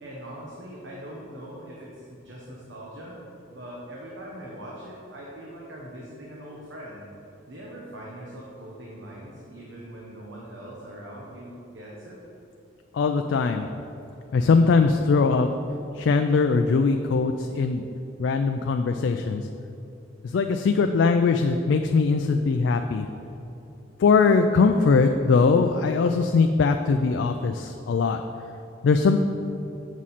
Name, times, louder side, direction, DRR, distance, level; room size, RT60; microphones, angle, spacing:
voice 1, 0.0-3.2 3.5-7.1 7.5-12.2, right 1 dB, 75° right, -4 dB, 1.1 m, -41 dB
voice 2, 12.9-13.7 14.3-15.6 16.0-17.8 18.2-19.4 20.2-23.1 24.0-28.2 28.8-29.2, left 4 dB, 70° left, 6 dB, 0.3 m, -21 dB
7.4 x 6.2 x 4.2 m, 2.9 s
head